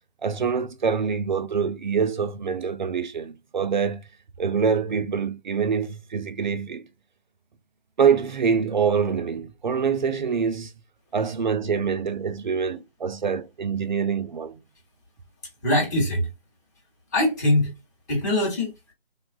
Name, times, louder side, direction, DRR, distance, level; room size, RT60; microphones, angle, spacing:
voice 1, 0.2-4.0 4.4-6.9 8.0-10.7 11.1-14.6, right 6 dB, 50° right, 0.4 m, -25 dB
voice 2, 15.6-16.3 17.1-17.7 18.1-18.9, left 1 dB, 15° left, 0.8 m, -22 dB
3.4 x 2.3 x 2.3 m
figure-of-eight pair, 155°, 31 cm